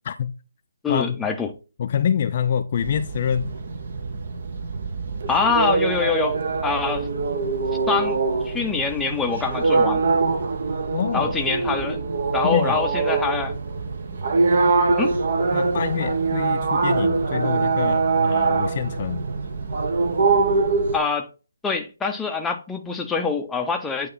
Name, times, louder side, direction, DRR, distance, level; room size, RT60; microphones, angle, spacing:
voice 1, 0.8-1.5 5.3-7.1 7.9-8.2 8.4-10.0 11.1-12.0 12.3-13.5 15.0-15.2 20.9-21.3 21.6-24.1, left 5 dB, 5° left, 0.7 m, -24 dB
voice 2, 1.8-3.5 10.9-11.3 12.4-12.8 15.5-19.3, left 8 dB, 40° left, 0.4 m, -26 dB
sound 1, 2.8-21.0, right 4 dB, 50° right, 1.1 m, -23 dB
8.8 x 3.1 x 3.9 m
figure-of-eight pair, 155°, 0 cm